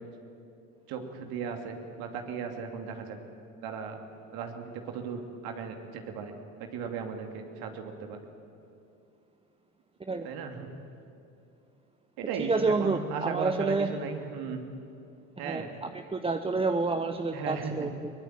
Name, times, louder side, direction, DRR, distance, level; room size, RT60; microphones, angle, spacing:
voice 1, 0.9-3.2 3.6-4.0 4.3-6.3 6.7-8.2 10.2-10.7 12.2-14.6 15.4-15.7 17.3-17.9, right 6 dB, 60° right, 4 dB, 2.9 m, -36 dB
voice 2, 12.4-13.9 15.4-18.1, right 3 dB, 15° right, 8 dB, 0.9 m, -29 dB
22.5 x 19.5 x 9.1 m, 2.7 s
hypercardioid pair, 80°, 41 cm